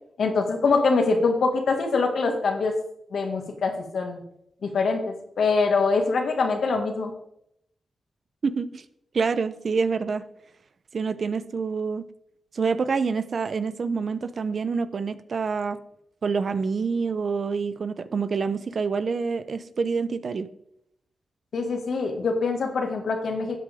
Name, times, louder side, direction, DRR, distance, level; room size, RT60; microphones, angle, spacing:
voice 1, 0.2-2.8 3.1-4.2 4.6-7.1 21.5-23.6, left 4 dB, 80° left, 4 dB, 2.0 m, -24 dB
voice 2, 8.4-8.8 9.1-10.2 10.9-12.1 12.5-15.8 16.2-20.5, right 5 dB, 60° right, 13 dB, 0.7 m, -27 dB
12.5 x 8.3 x 3.6 m, 0.74 s
cardioid pair, 85°, 0 cm